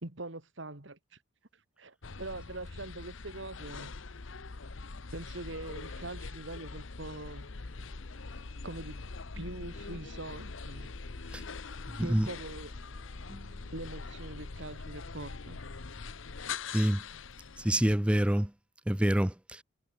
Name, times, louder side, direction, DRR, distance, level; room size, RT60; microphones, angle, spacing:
voice 1, 0.0-1.2 1.5-3.9 5.1-7.5 8.6-9.0 9.3-10.9 12.0-12.7 13.7-15.6, right 2 dB, 65° right, 2.2 m, -43 dB
sound 1, 2.0-18.0, left 4 dB, 75° left, 1.0 m, -43 dB
sound 2, 7.7-14.9, equal, 30° right, 7.7 m, -61 dB
voice 2, 12.0-12.3 16.7-17.0 17.6-18.5 18.9-19.6, equal, 5° right, 0.5 m, -26 dB
head